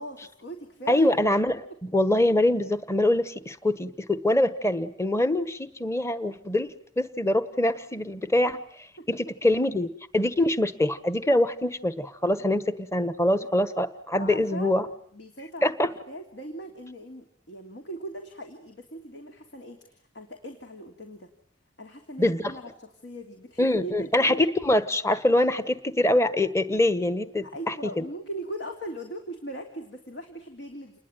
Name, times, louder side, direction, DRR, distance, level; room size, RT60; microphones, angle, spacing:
voice 1, 0.0-1.2 9.0-9.1 12.4-12.6 13.4-13.5 14.1-14.7 15.1-15.7 16.1-21.3 21.8-24.4 27.4-31.0, right 1 dB, 70° left, 4 dB, 3.2 m, -39 dB
voice 2, 0.9-1.5 1.8-14.9 15.6-15.9 22.2-22.5 23.6-28.0, left 1 dB, 15° left, 13 dB, 1.4 m, -24 dB
29.0 x 21.0 x 9.2 m, 0.62 s
head